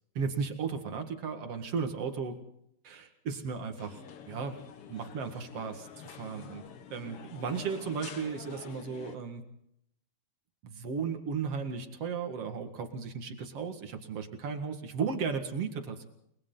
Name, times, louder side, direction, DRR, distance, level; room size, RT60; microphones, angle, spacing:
voice 1, 0.2-2.4 2.8-4.6 4.9-6.6 6.9-9.4 10.6-16.1, right 5 dB, 45° right, 5 dB, 2.2 m, -35 dB
sound 1, 3.8-9.2, left 7 dB, 85° left, 1.2 m, -47 dB
29.5 x 22.0 x 4.0 m, 0.76 s
omnidirectional pair, 4.8 m